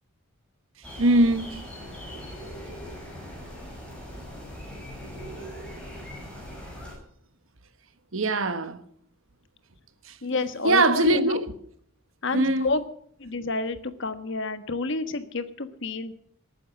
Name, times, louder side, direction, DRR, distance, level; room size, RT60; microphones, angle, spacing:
sound 1, 0.8-6.9, equal, 5° left, 6.5 m, -40 dB
voice 1, 1.0-1.6 8.1-8.8 10.0-10.2 10.6-11.6 12.3-12.7, right 2 dB, 70° right, 1.3 m, -22 dB
voice 2, 10.2-11.4 12.2-12.8 13.2-16.1, left 3 dB, 60° left, 1.3 m, -29 dB
19.5 x 9.3 x 7.4 m
head